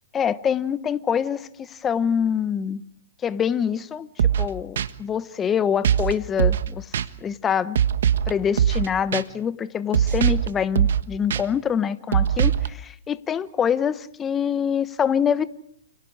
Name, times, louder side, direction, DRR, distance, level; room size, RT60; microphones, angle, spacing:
voice 1, 0.1-2.8 3.2-6.9 7.2-7.8 8.3-15.5, left 8 dB, 20° left, 1.1 m, -25 dB
sound 1, 4.2-4.5 4.8-4.9 5.8-6.1 6.4-6.7 6.9-7.1 7.7-8.3 8.6-8.9 9.1-9.2 9.9-10.5 10.7-11.0 11.3-11.4 12.1-12.7, right 9 dB, 70° right, 1.3 m, -20 dB
29.5 x 29.5 x 4.9 m
hypercardioid pair, 130°, 0 cm